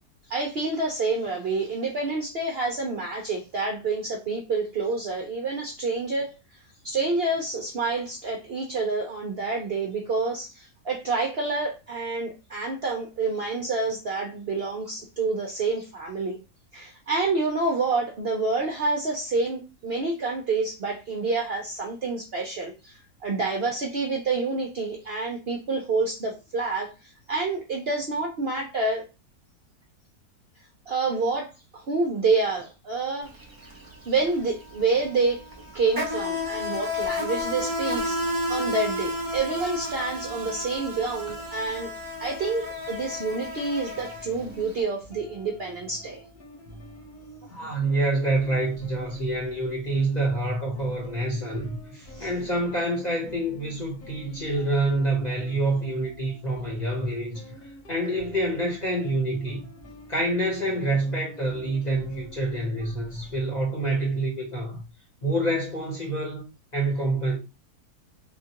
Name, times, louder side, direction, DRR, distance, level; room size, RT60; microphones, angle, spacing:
voice 1, 0.3-6.3 6.8-16.4 16.7-26.9 27.3-29.0 30.9-33.3 34.1-35.4 35.7-38.2 38.5-41.9 42.2-46.2 52.1-52.3, right 3 dB, 55° right, 0.7 m, -28 dB
Insect, 33.2-33.4 33.7-44.7, left 1 dB, 20° right, 0.6 m, -31 dB
sound 1, 43.9-63.4, equal, 75° left, 1.4 m, -48 dB
voice 2, 47.4-57.4 57.9-59.6 60.1-64.8 65.2-66.5 66.7-67.4, right 2 dB, 35° left, 0.9 m, -27 dB
3.6 x 2.4 x 2.8 m
omnidirectional pair, 1.7 m